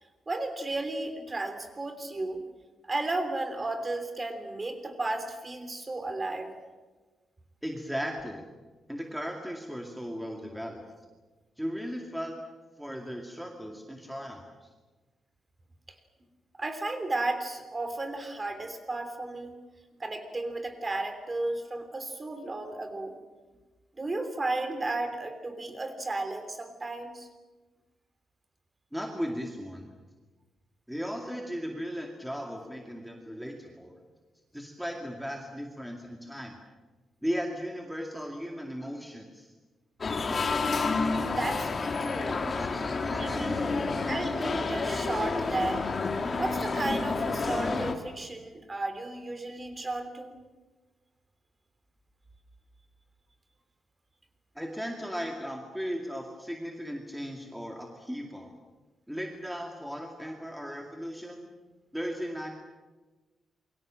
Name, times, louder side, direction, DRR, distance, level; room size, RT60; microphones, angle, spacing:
voice 1, 0.3-2.4 2.9-6.5 16.6-19.6 20.0-23.2 24.0-27.3 41.3-42.5 43.1-43.6 44.0-45.9 46.4-50.4, right 2 dB, 20° right, 8 dB, 3.3 m, -34 dB
voice 2, 7.6-8.4 8.9-10.8 11.6-12.4 12.8-14.7 28.9-29.9 30.9-33.9 34.5-36.6 37.2-39.5 42.4-44.1 54.6-58.5 59.1-61.5 61.9-62.5, equal, ahead, 1 dB, 2.3 m, -37 dB
sound 1, 40.0-48.0, left 4 dB, 30° left, 2.3 m, -29 dB
28.0 x 23.5 x 7.6 m, 1.3 s
wide cardioid pair, 165°, 0 cm